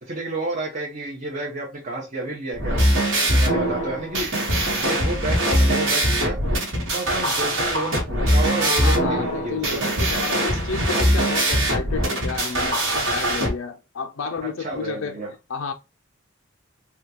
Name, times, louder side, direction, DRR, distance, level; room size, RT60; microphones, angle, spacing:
voice 1, 0.0-2.8 3.3-4.3 4.6-6.4 6.9-10.0 14.4-15.3, right 2 dB, 40° right, 0.8 m, -31 dB
sound 1, 2.5-13.5, right 1 dB, 70° right, 1.2 m, -22 dB
voice 2, 8.5-15.2 15.5-15.7, left 4 dB, 75° left, 0.5 m, -31 dB
3.5 x 2.3 x 2.8 m
head